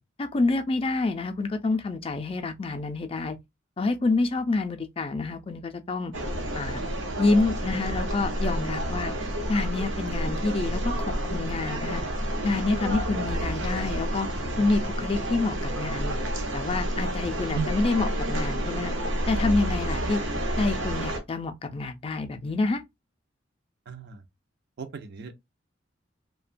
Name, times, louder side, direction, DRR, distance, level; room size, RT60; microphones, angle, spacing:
voice 1, 0.2-3.4 3.8-6.1 6.5-6.8 7.2-9.1 9.5-10.9 11.3-12.0 12.4-14.3 14.6-16.1 16.5-18.9 19.3-20.2 20.6-22.8, left 3 dB, 30° left, 0.4 m, -27 dB
sound 1, 6.1-21.2, right 1 dB, 85° right, 0.8 m, -29 dB
voice 2, 23.9-24.2 24.8-25.3, right 7 dB, 60° right, 0.4 m, -34 dB
2.8 x 2.1 x 2.4 m
head